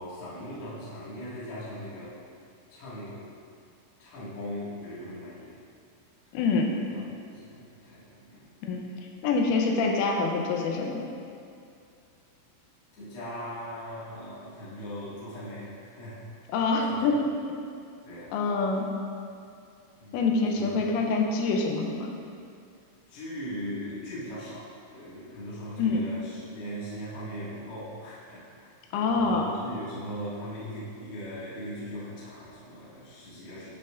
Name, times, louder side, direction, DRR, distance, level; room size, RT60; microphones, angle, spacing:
voice 1, 0.0-2.1 2.7-3.2 4.0-5.6 6.9-7.0 7.3-8.5 12.9-16.4 16.9-17.0 18.0-18.4 20.0-20.2 20.5-20.8 23.1-28.7 29.1-33.7, equal, 60° left, -10 dB, 1.3 m, -39 dB
voice 2, 6.3-6.8 8.6-8.8 9.2-11.1 16.5-17.6 18.3-18.9 20.1-22.2 25.8-26.1 28.9-29.5, left 3 dB, 85° left, 1 dB, 3.2 m, -26 dB
12.0 x 5.4 x 2.5 m, 2.4 s
omnidirectional pair, 5.7 m